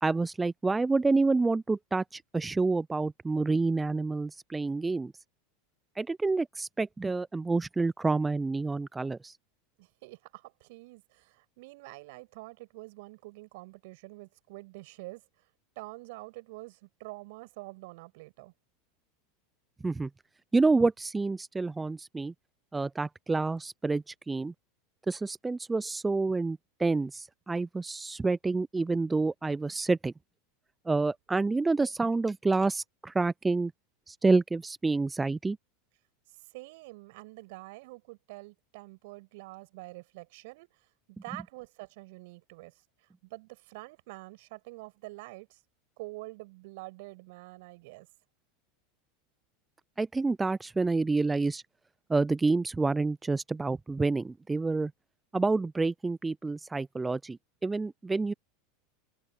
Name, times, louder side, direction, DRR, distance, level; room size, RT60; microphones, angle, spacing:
voice 1, 0.0-5.1 6.0-9.4 19.8-20.1 20.5-22.3 22.7-24.5 25.1-30.1 30.9-33.7 34.1-35.6 50.0-51.6 52.1-54.9 55.3-58.3, right 3 dB, 15° right, 0.5 m, -28 dB
voice 2, 9.8-15.4 15.7-18.5 36.3-45.6 46.0-48.1, right 23 dB, 60° right, 6.3 m, -47 dB
figure-of-eight pair, 85°, 0 cm